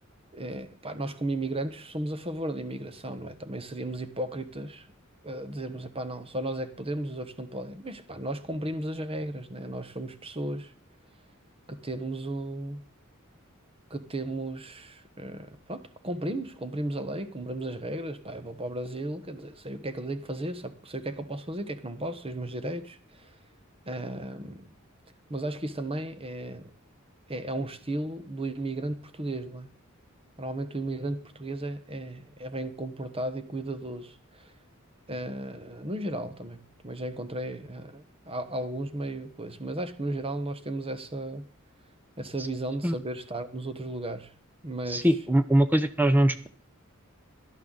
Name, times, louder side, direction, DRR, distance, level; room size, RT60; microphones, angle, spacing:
voice 1, 0.3-4.9 5.2-10.7 11.7-12.8 13.9-23.3 23.9-24.7 25.3-26.7 27.3-29.7 30.4-34.5 35.1-41.5 42.2-44.3 44.6-45.1, right 1 dB, 25° right, 1.2 m, -35 dB
voice 2, 44.9-46.5, right 1 dB, 10° right, 0.7 m, -22 dB
17.5 x 12.0 x 4.0 m
head